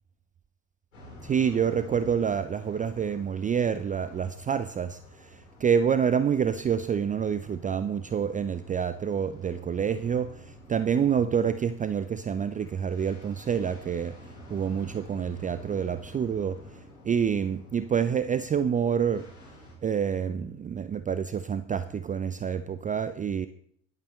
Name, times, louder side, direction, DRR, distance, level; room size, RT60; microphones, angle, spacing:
sound 1, 0.9-19.7, left 1 dB, 80° left, 6.0 m, -50 dB
voice 1, 1.2-14.2 14.5-16.8 17.0-19.3 19.8-23.5, right 7 dB, 20° right, 13 dB, 0.5 m, -27 dB
17.0 x 11.5 x 3.2 m, 0.66 s
figure-of-eight pair, 60°, 38 cm